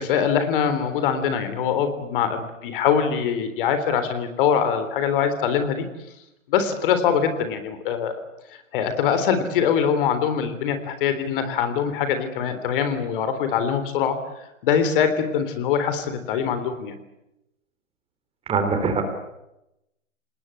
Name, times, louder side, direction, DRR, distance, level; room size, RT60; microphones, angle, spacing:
voice 1, 0.0-5.8 6.5-8.1 8.7-14.2 14.6-17.0, left 7 dB, 45° left, 10 dB, 3.7 m, -23 dB
voice 2, 18.5-19.1, right 4 dB, 15° right, 7 dB, 3.7 m, -23 dB
28.0 x 20.0 x 8.4 m, 0.88 s
hypercardioid pair, 140°, 38 cm